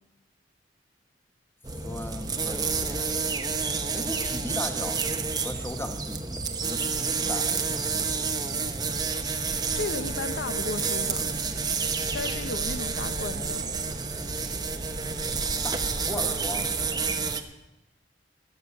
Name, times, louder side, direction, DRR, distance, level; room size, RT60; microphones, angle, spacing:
sound 1, 1.6-17.4, right 4 dB, 20° right, 0.8 m, -29 dB
voice 1, 1.8-3.1 3.9-5.0 5.4-6.9 7.2-7.8 15.6-16.7, left 1 dB, 15° left, 6 dB, 1.1 m, -37 dB
voice 2, 9.7-11.3 12.1-13.7, left 3 dB, 80° left, 12 dB, 0.7 m, -34 dB
sound 2, 11.2-17.2, right 1 dB, 60° right, 1.3 m, -43 dB
14.0 x 6.6 x 9.6 m, 0.99 s
head